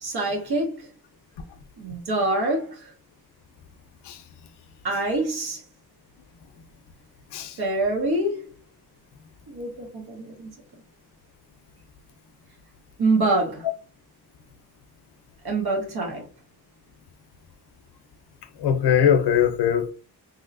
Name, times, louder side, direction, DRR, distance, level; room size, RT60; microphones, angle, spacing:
voice 1, 0.0-0.9 1.8-2.9 4.8-5.6 7.6-8.5 9.5-10.5 13.0-13.7 15.4-16.3, right 2 dB, 75° right, 1.4 m, -25 dB
voice 2, 18.6-19.9, left 8 dB, 85° left, 0.6 m, -20 dB
3.1 x 2.7 x 2.5 m
cardioid pair, 90°, 39 cm